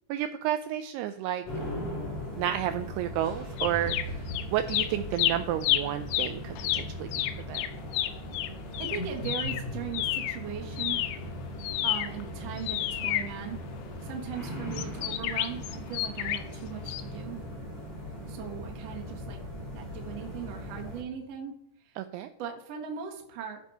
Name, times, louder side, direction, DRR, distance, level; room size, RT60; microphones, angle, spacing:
voice 1, 0.1-1.4 2.4-7.1 7.5-7.6 22.0-22.3, right 11 dB, 90° right, 9 dB, 2.3 m, -31 dB
sound 1, 1.4-21.0, left 1 dB, 40° left, 4.9 m, -39 dB
sound 2, 3.6-4.4 4.7-10.4 10.7-14.0 14.7-16.6 16.9-17.0, left 13 dB, 80° left, 2.6 m, -30 dB
sound 3, 3.6-4.5 9.0-9.8, equal, 65° left, 1.6 m, -37 dB
voice 2, 8.8-11.0 11.8-13.6 14.0-17.4 18.3-19.4 19.7-21.5 21.8-22.1 22.4-23.6, right 8 dB, 65° right, 1 dB, 1.6 m, -39 dB
13.5 x 4.8 x 5.5 m, 0.75 s
omnidirectional pair, 5.2 m